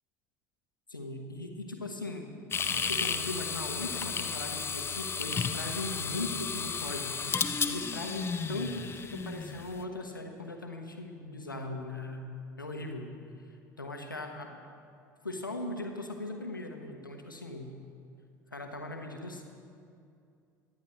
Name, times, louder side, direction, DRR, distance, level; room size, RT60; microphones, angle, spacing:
voice 1, 0.9-2.3 2.6-12.3 12.6-13.1 13.8-14.6 15.2-17.7 18.5-19.4, left 2 dB, 85° left, 3 dB, 1.1 m, -39 dB
sound 1, 2.5-9.8, left 5 dB, 25° left, 0.7 m, -33 dB
23.0 x 9.7 x 3.2 m, 2.5 s
figure-of-eight pair, 65°, 11 cm